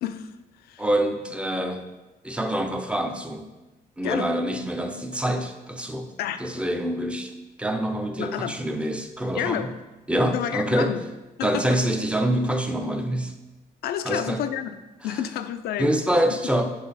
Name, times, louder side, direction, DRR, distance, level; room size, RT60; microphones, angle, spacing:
voice 1, 0.0-0.3 0.6-0.9 4.0-4.3 6.2-6.4 8.2-8.6 9.3-9.7 10.3-11.0 11.4-11.8 13.8-14.7 15.0-15.9 16.3-16.4, left 10 dB, 70° left, 11 dB, 0.4 m, -29 dB
voice 2, 0.8-1.8 2.2-3.5 4.0-6.1 6.4-7.3 7.6-9.7 10.1-10.9 11.4-13.3 14.1-14.4 15.8-16.7, right 1 dB, 5° right, 6 dB, 0.5 m, -25 dB
7.4 x 3.2 x 4.0 m, 1.1 s
cardioid pair, 110°, 17 cm